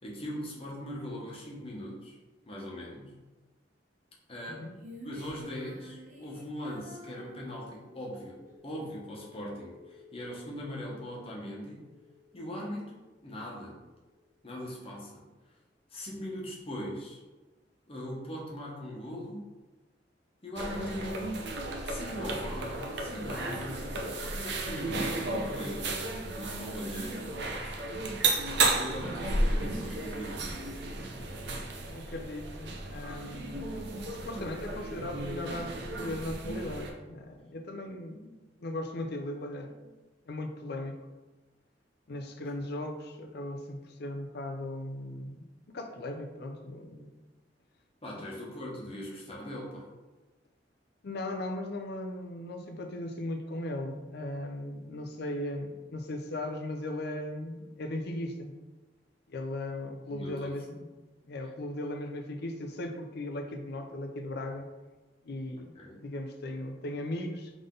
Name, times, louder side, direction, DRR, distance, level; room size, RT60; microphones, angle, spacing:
voice 1, 0.0-2.2 2.5-3.1 4.3-4.7 5.0-11.9 12.3-12.9 13.2-13.8 14.4-15.2 15.9-17.2 17.9-19.5 20.4-21.4 21.8-23.8 24.2-25.9 26.4-27.3 27.6-27.8 28.7-30.4 48.0-49.9 60.1-60.5 65.7-66.1, equal, 30° left, -4 dB, 1.1 m, -40 dB
Female singing, 4.8-8.3, equal, 45° right, 1.0 m, -50 dB
sound 1, 8.3-15.4, left 5 dB, ahead, 0.5 m, -58 dB
sound 2, 20.6-36.9, right 2 dB, 65° right, 0.7 m, -33 dB
voice 2, 31.8-33.7 34.0-38.3 38.6-39.9 40.3-41.0 42.1-47.1 51.0-58.6 59.3-60.9 61.2-64.7 65.2-67.5, left 1 dB, 60° left, 4 dB, 0.6 m, -38 dB
3.8 x 3.5 x 3.8 m, 1.2 s
head